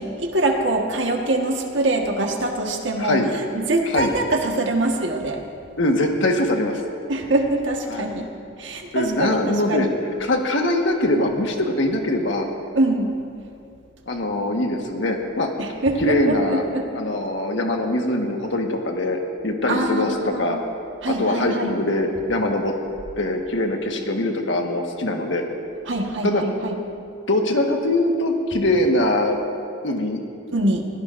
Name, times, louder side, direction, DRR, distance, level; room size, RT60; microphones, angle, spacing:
voice 1, 0.0-3.2 3.5-5.4 7.1-8.3 8.6-9.9 12.7-13.1 15.6-16.8 19.7-20.6 21.0-21.7 25.9-26.7 30.5-30.8, right 2 dB, 70° right, 2 dB, 1.5 m, -23 dB
voice 2, 5.8-6.8 7.9-8.1 8.9-9.9 10.2-12.5 14.1-15.5 16.0-16.6 16.9-20.6 21.0-22.7 23.2-25.4 26.2-26.4 27.3-29.4 29.8-30.2, left 1 dB, 75° left, 2 dB, 1.5 m, -22 dB
22.5 x 16.5 x 2.6 m, 2.5 s
head